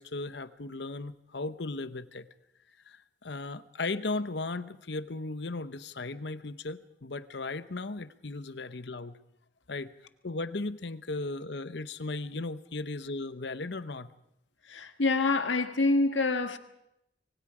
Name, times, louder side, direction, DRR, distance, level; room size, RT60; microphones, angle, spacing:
voice 1, 0.0-2.3 2.9-9.2 9.7-9.9 10.2-14.1, left 3 dB, 60° left, 0.9 m, -36 dB
voice 2, 14.7-16.6, left 3 dB, 85° left, 1.5 m, -26 dB
25.5 x 24.0 x 4.9 m
head